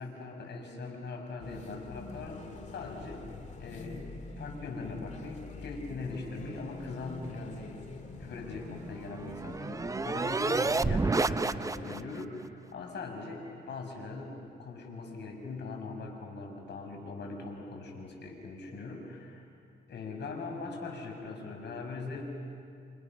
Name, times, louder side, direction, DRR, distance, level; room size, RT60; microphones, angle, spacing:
voice 1, 0.0-2.5 2.7-3.2 3.6-4.1 4.4-19.4 19.9-22.2, left 3 dB, 60° left, 2 dB, 6.1 m, -41 dB
sound 1, 1.4-12.0, left 3 dB, 35° left, 2.1 m, -46 dB
sound 2, 8.6-12.2, right 3 dB, 15° right, 0.5 m, -30 dB
28.5 x 27.0 x 6.1 m, 2.4 s
cardioid pair, 90°, 20 cm